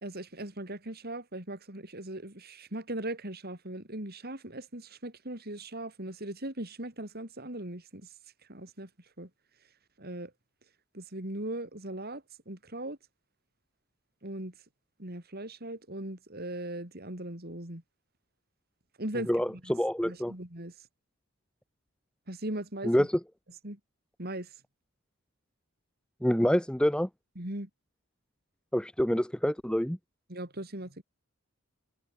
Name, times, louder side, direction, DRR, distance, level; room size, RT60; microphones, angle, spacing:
voice 1, 0.0-8.1 8.5-8.9 9.2-9.3 10.0-10.3 10.9-13.0 14.2-14.5 15.0-17.8 19.0-19.3 19.6-19.8 20.0-20.7 22.3-23.1 23.6-23.8 24.2-24.5 27.4-27.7 30.3-31.0, right 1 dB, 45° right, 4.1 m, -39 dB
voice 2, 19.3-20.3 22.8-23.1 26.2-27.1 28.7-30.0, equal, 5° left, 0.8 m, -27 dB
head